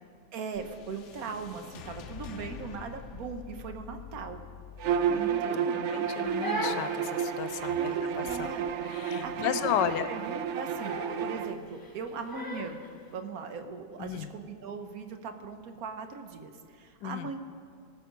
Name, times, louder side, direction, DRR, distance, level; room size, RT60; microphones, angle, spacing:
voice 1, 0.3-4.4 4.9-5.8 7.8-8.8 9.2-12.8 13.1-17.4, right 5 dB, 65° right, 7 dB, 1.3 m, -40 dB
sound 1, 0.5-8.9, left 7 dB, 65° left, 0.7 m, -48 dB
Bowed string instrument, 4.8-11.5, right 8 dB, 85° right, 0.6 m, -31 dB
voice 2, 5.1-7.9 8.4-8.5 8.8-10.1 14.0-14.3 17.0-17.3, left 10 dB, 85° left, 12 dB, 1.2 m, -34 dB
Crying sobbing, 6.0-12.9, equal, 15° left, 0.8 m, -39 dB
18.5 x 6.4 x 5.2 m, 2.2 s
omnidirectional pair, 1.8 m